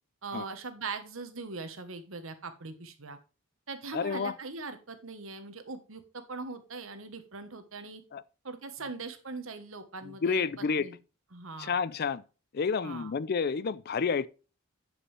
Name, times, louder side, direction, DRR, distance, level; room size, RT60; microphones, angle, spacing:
voice 1, 0.2-3.2 3.7-8.0 8.4-11.0 11.3-11.7 12.8-13.1, right 3 dB, 70° right, 1.3 m, -41 dB
voice 2, 3.9-4.4 8.1-8.2 10.0-10.9 11.6-12.2 12.5-14.3, left 5 dB, 45° left, 0.4 m, -30 dB
9.8 x 5.4 x 3.3 m
head